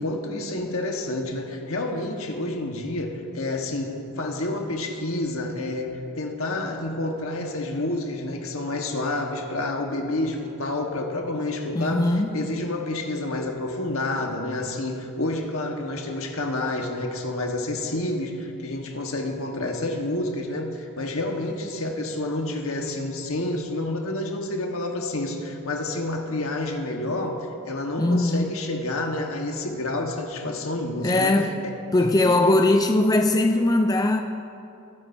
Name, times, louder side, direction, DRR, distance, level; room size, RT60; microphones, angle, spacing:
voice 1, 0.0-12.1 12.3-31.5 32.0-32.4, left 2 dB, 70° left, 2 dB, 1.3 m, -29 dB
voice 2, 11.7-12.4 28.0-28.5 31.0-31.6 31.9-34.2, left 2 dB, 15° left, 6 dB, 0.4 m, -20 dB
22.0 x 9.8 x 2.7 m, 2.6 s
head